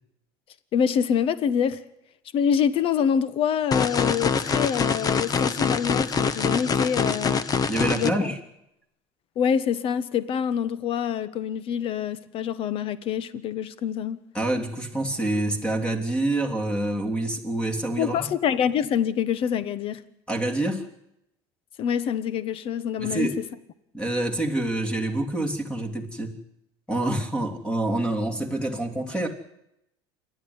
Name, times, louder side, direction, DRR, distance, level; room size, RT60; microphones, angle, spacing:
voice 1, 0.7-1.8 2.3-7.4 7.9-8.3 9.3-14.2 18.0-20.0 21.8-23.3, left 8 dB, 45° left, 1.3 m, -26 dB
sound 1, 3.7-8.1, left 5 dB, 30° left, 1.1 m, -24 dB
voice 2, 7.7-8.4 14.3-18.3 20.3-20.8 23.0-23.3 23.9-26.4 26.9-29.3, right 1 dB, 5° left, 3.3 m, -27 dB
28.0 x 11.5 x 9.8 m
supercardioid pair, 110°, 13 cm